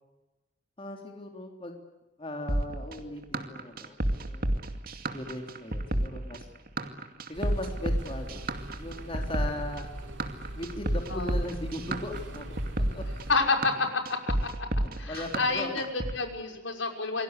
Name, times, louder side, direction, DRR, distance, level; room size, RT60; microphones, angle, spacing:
voice 1, 0.8-1.8 2.2-4.5 5.1-6.4 7.3-8.4 8.8-9.9 10.5-12.5 12.9-13.0 15.1-15.8, left 1 dB, 30° left, 2 dB, 3.6 m, -38 dB
sound 1, 2.5-16.1, right 1 dB, 50° right, 2.4 m, -31 dB
sound 2, 7.3-13.4, right 1 dB, 85° right, 7.4 m, -42 dB
voice 2, 13.3-14.5 15.0-17.2, left 3 dB, 75° left, 4 dB, 5.9 m, -29 dB
28.5 x 23.0 x 8.3 m, 1.0 s
head